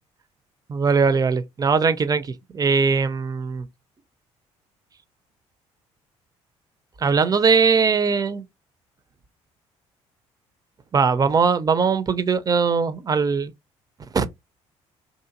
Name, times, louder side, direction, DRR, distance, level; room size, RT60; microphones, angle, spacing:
voice 1, 0.7-3.7 7.0-8.4 10.9-13.5 14.1-14.3, right 5 dB, 25° right, 0.4 m, -20 dB
2.8 x 2.5 x 2.4 m
hypercardioid pair, 50°, 15 cm